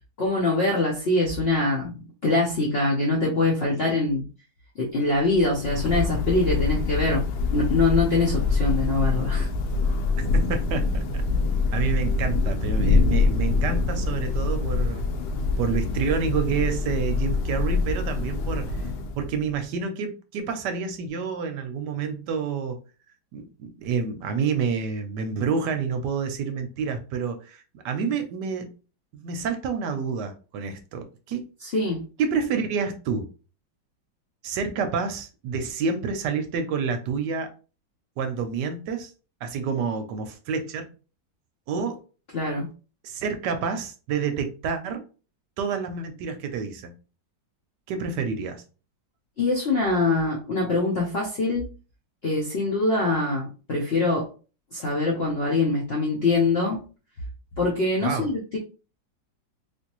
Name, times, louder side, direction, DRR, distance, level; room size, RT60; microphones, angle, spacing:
voice 1, 0.2-4.2 4.8-7.2 7.5-9.5 31.6-32.0 42.3-42.7 49.4-51.7 52.2-54.3 54.7-56.8 57.6-58.6, left 2 dB, 65° left, 0.6 m, -24 dB
Thunder / Rain, 5.2-19.5, left 3 dB, 85° left, 1.3 m, -25 dB
voice 2, 10.3-11.2 11.7-15.0 15.6-18.8 19.2-22.8 23.3-28.7 29.1-31.5 32.2-33.3 34.4-37.5 38.2-39.1 39.4-40.9 41.7-42.0 43.0-45.0 45.6-46.9 47.9-48.6 58.0-58.3, right 5 dB, 75° right, 1.1 m, -28 dB
3.5 x 2.5 x 2.9 m
omnidirectional pair, 2.0 m